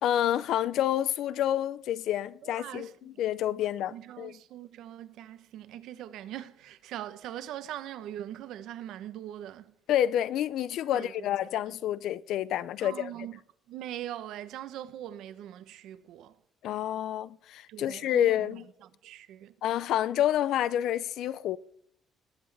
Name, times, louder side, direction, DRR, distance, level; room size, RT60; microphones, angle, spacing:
voice 1, 0.0-2.9 3.2-4.4 9.9-13.1 16.6-18.7 19.6-21.6, left 11 dB, 70° left, 0.5 m, -28 dB
voice 2, 2.4-3.2 3.9-9.7 10.9-11.2 12.8-13.4 13.7-16.3 17.7-19.5, right 12 dB, 75° right, 0.9 m, -42 dB
20.0 x 8.0 x 3.4 m
cardioid pair, 155°, 0 cm